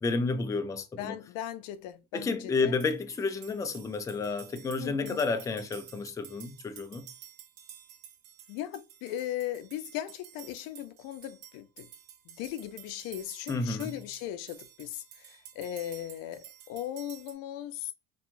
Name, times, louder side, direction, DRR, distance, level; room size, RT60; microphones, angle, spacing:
voice 1, 0.0-1.2 2.1-7.1 13.5-14.0, left 4 dB, 10° left, 0.3 m, -31 dB
voice 2, 1.0-2.7 4.8-5.2 8.5-11.9 12.3-17.9, left 12 dB, 80° left, 0.5 m, -38 dB
sound 1, 2.8-17.3, right 10 dB, 70° right, 0.7 m, -51 dB
2.8 x 2.2 x 2.5 m
supercardioid pair, 90°, 33 cm